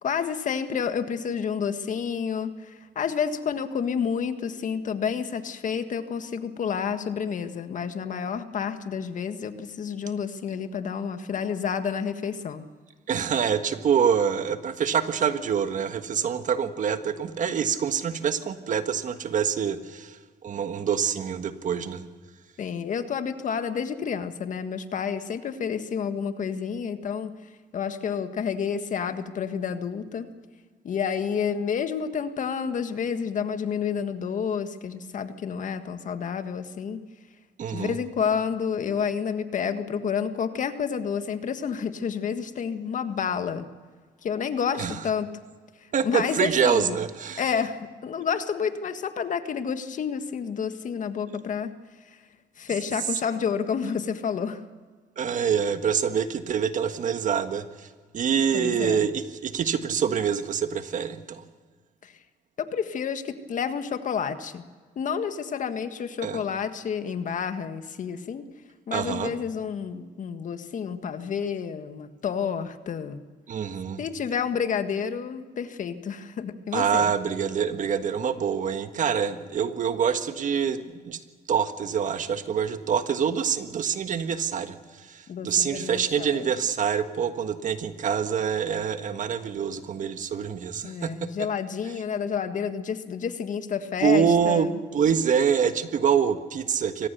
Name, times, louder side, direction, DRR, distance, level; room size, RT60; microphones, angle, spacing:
voice 1, 0.0-12.6 22.6-27.3 27.7-30.3 30.8-37.0 37.7-43.7 44.2-45.3 45.8-47.0 47.4-51.7 52.1-52.2 52.6-54.6 58.5-59.1 62.0-62.2 62.6-64.6 64.9-68.4 68.9-73.2 74.0-77.1 85.3-86.4 90.8-94.7, left 7 dB, 50° left, 9 dB, 1.7 m, -29 dB
voice 2, 13.1-22.0 37.6-38.0 44.8-45.0 45.9-47.5 55.2-57.9 58.1-61.4 66.2-66.4 68.9-69.3 73.5-74.0 76.7-81.2 81.5-91.5 94.0-97.1, right 7 dB, 50° right, 9 dB, 1.6 m, -26 dB
24.5 x 18.5 x 6.8 m, 1.5 s
cardioid pair, 95°, 16 cm